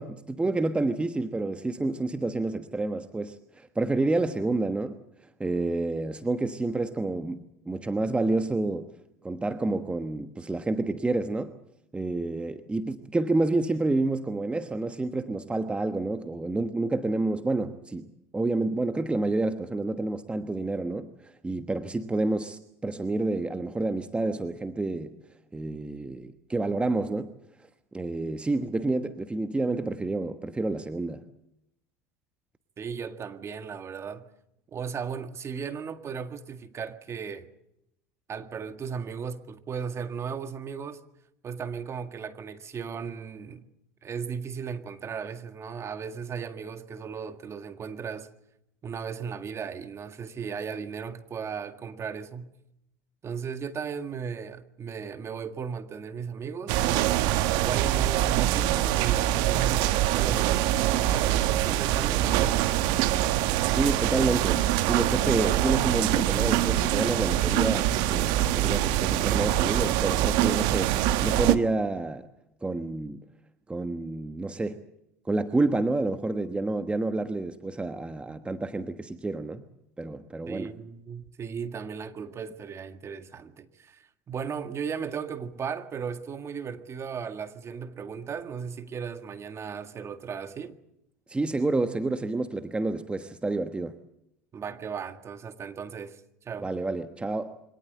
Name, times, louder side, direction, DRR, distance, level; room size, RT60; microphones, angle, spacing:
voice 1, 0.0-5.0 5.4-7.4 7.6-8.9 9.2-11.6 11.9-25.2 25.5-27.3 27.9-31.2 63.7-70.9 71.2-72.3 72.6-73.2 73.7-74.8 75.3-79.6 80.0-80.7 91.3-94.0 96.6-97.6, right 2 dB, 15° right, 1.2 m, -29 dB
voice 2, 32.8-34.3 34.7-37.5 38.3-41.0 41.4-43.7 44.0-48.3 48.8-52.5 53.2-56.8 57.6-60.8 61.1-62.8 80.5-90.8 94.5-96.7, right 6 dB, 35° right, 1.8 m, -36 dB
sound 1, 56.7-71.6, right 13 dB, 65° right, 1.3 m, -24 dB
24.5 x 18.5 x 7.8 m
hypercardioid pair, 80°, 8 cm